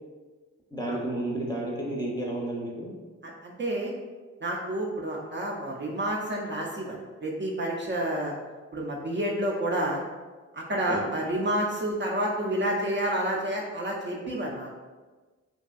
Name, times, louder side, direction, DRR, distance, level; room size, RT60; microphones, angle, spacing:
voice 1, 0.7-2.9 10.9-11.0, right 1 dB, 15° left, -3 dB, 0.6 m, -31 dB
voice 2, 3.2-3.9 4.4-8.3 8.7-10.0 10.5-14.8, right 1 dB, 35° right, -2 dB, 0.5 m, -29 dB
2.5 x 2.3 x 2.3 m, 1.3 s
supercardioid pair, 40°, 32 cm